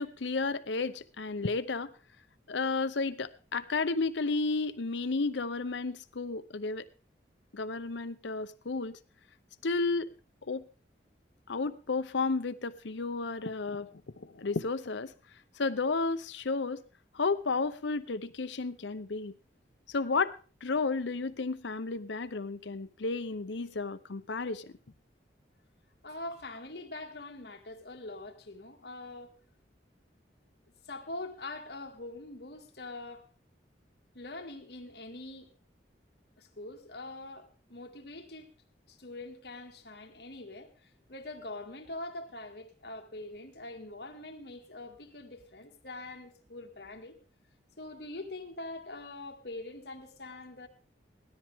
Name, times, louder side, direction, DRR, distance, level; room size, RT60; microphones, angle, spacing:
voice 1, 0.0-1.9 2.5-6.9 7.5-9.0 9.6-10.1 10.5-10.7 11.5-13.9 14.2-15.1 15.6-16.8 17.1-19.3 19.9-20.4 20.6-24.7, left 3 dB, 85° left, 0.8 m, -32 dB
voice 2, 26.0-29.3 30.8-33.3 34.1-35.5 36.4-38.5 38.9-47.2 47.8-50.7, left 2 dB, 65° left, 2.0 m, -43 dB
17.0 x 13.0 x 3.6 m
head